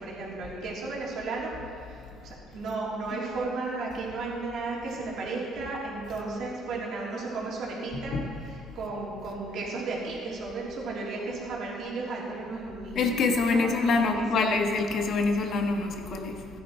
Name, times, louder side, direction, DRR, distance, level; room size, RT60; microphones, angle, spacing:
voice 1, 0.0-8.1 8.8-13.1 13.5-14.5, right 3 dB, 65° right, -4 dB, 3.5 m, -34 dB
voice 2, 7.9-8.2 12.9-16.5, left 3 dB, 55° left, 4 dB, 1.5 m, -26 dB
16.0 x 10.5 x 4.6 m, 2.5 s
supercardioid pair, 85°, 0 cm